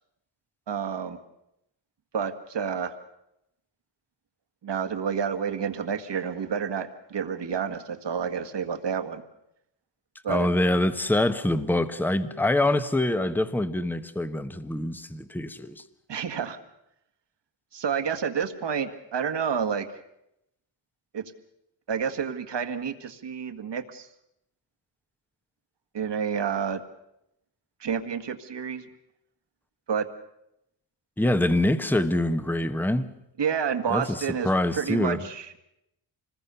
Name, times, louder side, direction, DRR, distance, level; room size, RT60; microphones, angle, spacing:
voice 1, 0.7-1.2 2.1-2.9 4.6-9.2 10.2-10.5 16.1-16.6 17.7-19.9 21.1-21.2 21.9-24.1 25.9-26.8 27.8-28.9 29.9-30.1 33.4-35.6, right 7 dB, 55° right, 1.9 m, -29 dB
voice 2, 10.3-15.8 31.2-33.1 33.9-34.2 34.4-35.2, left 1 dB, 5° left, 1.1 m, -25 dB
25.5 x 20.5 x 6.9 m
cardioid pair, 90°, 49 cm